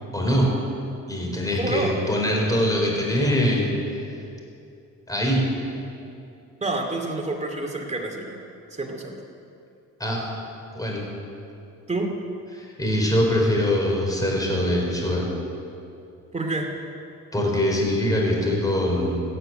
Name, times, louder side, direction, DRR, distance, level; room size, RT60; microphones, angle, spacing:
voice 1, 0.1-0.5 1.1-3.7 5.1-5.4 10.0-10.2 10.7-11.0 12.5-15.3 17.3-19.2, equal, 10° left, -1 dB, 4.5 m, -23 dB
voice 2, 1.6-1.9 6.6-8.4 8.7-9.1 11.9-12.1 16.3-16.7, right 2 dB, 20° right, 1 dB, 2.6 m, -28 dB
15.0 x 9.7 x 9.3 m, 2.6 s
cardioid pair, 90°, 30 cm